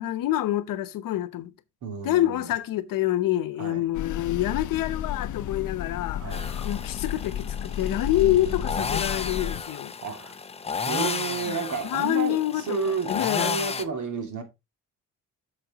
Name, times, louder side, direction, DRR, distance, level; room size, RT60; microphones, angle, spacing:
voice 1, 0.0-1.5 2.0-9.9 11.8-12.8 13.1-13.6, left 14 dB, 90° left, 1.0 m, -27 dB
voice 2, 1.8-2.5 3.6-3.8 6.2-6.5 8.2-8.9 10.0-10.4 10.9-14.4, right 5 dB, 65° right, 2.6 m, -32 dB
sound 1, 3.9-9.6, left 9 dB, 65° left, 0.6 m, -33 dB
sound 2, 6.3-13.8, left 5 dB, 20° left, 0.6 m, -33 dB
8.8 x 6.6 x 2.9 m
cardioid pair, 140°, 32 cm